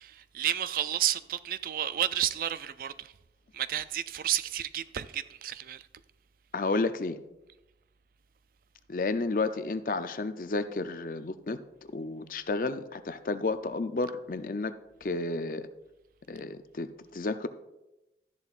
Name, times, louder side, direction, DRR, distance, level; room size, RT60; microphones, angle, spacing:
voice 1, 0.0-3.1 3.5-5.8, right 11 dB, 50° right, 0.3 m, -31 dB
voice 2, 6.5-7.2 8.9-11.6 11.9-14.7 15.0-15.7 16.3-17.5, left 3 dB, 50° left, 0.5 m, -31 dB
13.0 x 10.5 x 2.4 m
head